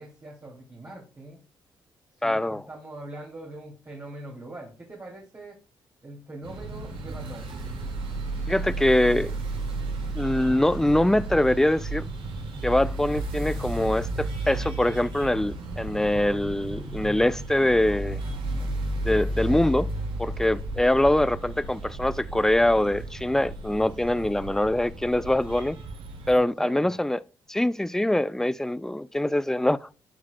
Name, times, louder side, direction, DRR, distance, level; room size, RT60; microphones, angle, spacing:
voice 1, 0.0-1.4 2.2-5.6 6.0-7.6 26.3-27.0, right 1 dB, 30° right, 2.7 m, -42 dB
voice 2, 2.2-2.6 8.5-9.3 10.1-12.0 12.6-18.2 19.0-19.9 20.2-25.8 26.3-27.2 27.5-29.9, left 1 dB, 5° left, 0.4 m, -23 dB
sound 1, 6.4-26.4, right 2 dB, 75° right, 3.1 m, -33 dB
13.0 x 4.7 x 2.2 m
cardioid pair, 70°, 9 cm